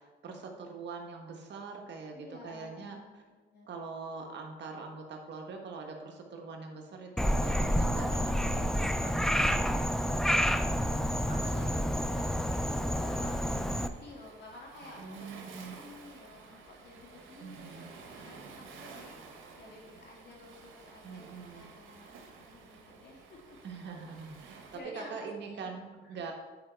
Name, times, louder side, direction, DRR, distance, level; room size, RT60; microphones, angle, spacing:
voice 1, 0.0-3.2 3.7-8.8 9.0-9.4 13.5-13.9 15.0-15.7 17.4-17.9 21.0-21.8 23.6-26.3, right 4 dB, 60° right, 2 dB, 1.4 m, -43 dB
voice 2, 2.1-3.7 9.2-10.2 10.9-23.6 24.7-25.7 26.0-26.2, left 2 dB, 60° left, -2 dB, 2.8 m, -51 dB
Frog, 7.2-13.9, equal, ahead, 0.4 m, -29 dB
Waves surf, 8.4-24.8, right 4 dB, 85° right, 1.3 m, -53 dB
9.6 x 4.8 x 4.5 m, 1.2 s
cardioid pair, 90°, 20 cm